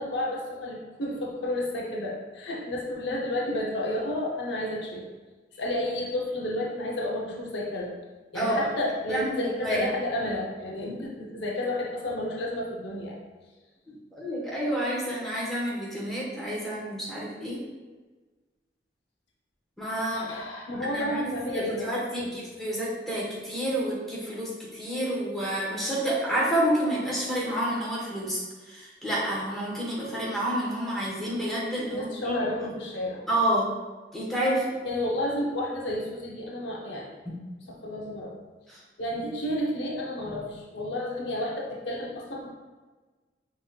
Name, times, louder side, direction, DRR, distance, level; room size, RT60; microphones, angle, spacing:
voice 1, 0.0-5.0 5.6-7.9 8.3-13.2 20.1-21.9 22.2-22.3 31.9-33.2 34.8-37.2 37.7-38.3 39.0-42.5, left 1 dB, 70° left, -2 dB, 0.8 m, -31 dB
voice 2, 8.3-8.7 9.1-9.9 13.9-17.6 19.8-20.3 20.8-32.4 33.3-33.7 34.1-34.7 38.7-38.8, right 1 dB, ahead, -7 dB, 1.3 m, -29 dB
5.6 x 3.0 x 2.4 m, 1.3 s
head